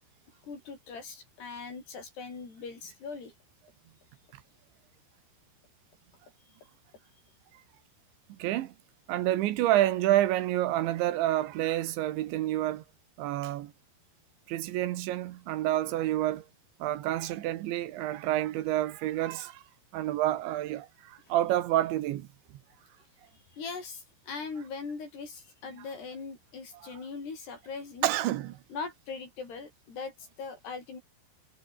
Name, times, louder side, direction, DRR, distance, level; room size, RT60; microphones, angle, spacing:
voice 1, 0.4-3.3 23.5-28.1 28.7-31.0, left 4 dB, 55° left, 9.7 m, -40 dB
voice 2, 8.4-8.7 9.1-12.8 13.2-13.7 14.5-16.4 16.8-19.6 19.9-22.3 26.8-26.9 28.0-28.6, right 14 dB, 75° right, 3.3 m, -28 dB
omnidirectional pair, 5.7 m